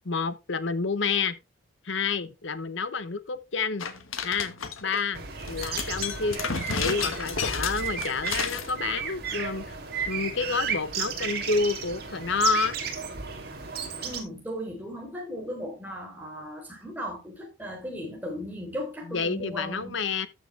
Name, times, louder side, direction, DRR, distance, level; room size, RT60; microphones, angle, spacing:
voice 1, 0.0-1.4 1.8-3.9 4.2-4.5 4.8-6.4 6.7-9.8 10.1-12.8 19.1-20.3, left 4 dB, 70° left, 1.0 m, -29 dB
sound 1, 3.8-5.0 5.4-8.7, left 6 dB, 90° left, 1.4 m, -32 dB
sound 2, 5.1-14.2, right 6 dB, 50° right, 2.7 m, -34 dB
voice 2, 14.0-20.1, equal, 10° right, 3.5 m, -37 dB
13.5 x 6.8 x 3.3 m
head